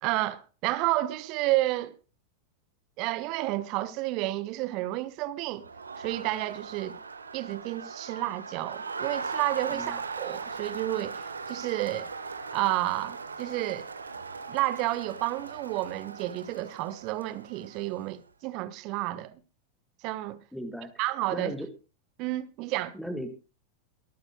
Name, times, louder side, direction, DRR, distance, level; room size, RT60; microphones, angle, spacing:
voice 1, 0.0-2.0 3.0-5.6 6.0-7.0 7.3-12.1 12.5-13.9 14.5-19.4 20.0-20.4 21.0-21.5 22.2-22.9, right 17 dB, 40° right, 1.1 m, -31 dB
Crowd, 5.5-18.1, right 5 dB, 75° right, 1.3 m, -39 dB
voice 2, 20.5-20.9 21.3-21.7 22.9-23.3, equal, ahead, 1.6 m, -36 dB
23.0 x 13.5 x 2.2 m
figure-of-eight pair, 90°, 0 cm